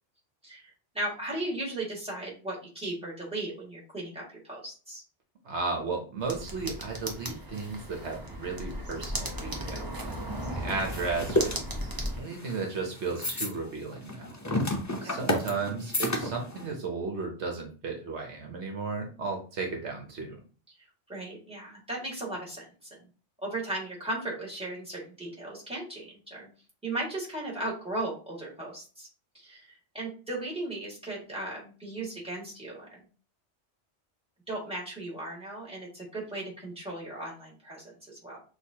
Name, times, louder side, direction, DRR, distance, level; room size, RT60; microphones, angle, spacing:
voice 1, 0.4-5.0 15.0-15.2 21.1-23.0 23.4-26.5 26.8-29.1 29.3-33.0 34.5-38.4, right 2 dB, 5° right, -4 dB, 1.9 m, -36 dB
voice 2, 5.4-11.6 12.1-14.3 15.0-20.4, right 4 dB, 75° right, 2 dB, 1.1 m, -34 dB
sound 1, 6.2-12.2, right 1 dB, 20° right, 0.7 m, -36 dB
sound 2, 9.4-16.7, left 1 dB, 20° left, 0.6 m, -32 dB
6.2 x 2.6 x 2.8 m, 0.37 s
omnidirectional pair, 1.2 m